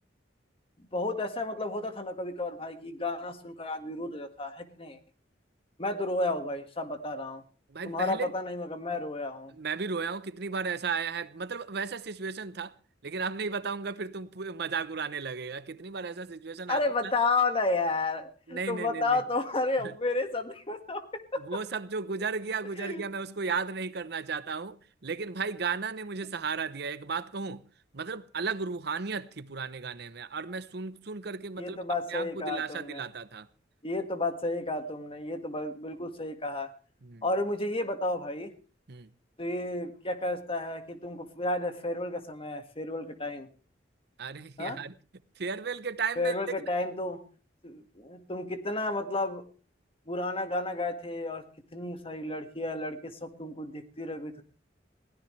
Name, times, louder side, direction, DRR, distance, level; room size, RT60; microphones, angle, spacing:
voice 1, 0.8-5.0 5.8-7.4 7.8-9.5 16.7-21.6 22.8-23.0 31.6-33.0 33.8-36.7 37.2-38.5 39.4-43.5 44.6-44.8 46.2-47.2 47.6-49.4 50.1-51.4 51.7-54.4, left 2 dB, 30° left, 1.8 m, -32 dB
voice 2, 7.7-8.3 9.5-12.7 13.0-16.8 18.5-19.2 19.8-19.9 21.4-24.8 25.0-27.6 27.9-31.8 32.1-33.5 37.0-37.2 38.9-39.1 44.2-44.9 45.4-46.3, right 5 dB, 65° right, 0.8 m, -34 dB
21.5 x 16.5 x 3.3 m
head